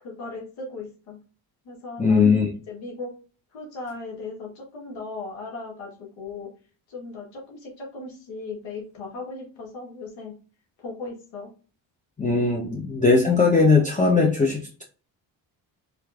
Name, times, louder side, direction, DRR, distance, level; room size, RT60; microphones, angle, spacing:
voice 1, 0.0-1.2 1.6-3.1 3.5-6.5 6.9-10.3 10.8-11.5 12.5-12.6, left 3 dB, 90° left, -1 dB, 1.5 m, -37 dB
voice 2, 2.0-2.5 12.2-14.8, left 4 dB, 15° left, -2 dB, 0.9 m, -19 dB
3.4 x 3.1 x 2.5 m, 0.37 s
supercardioid pair, 60°, 45 cm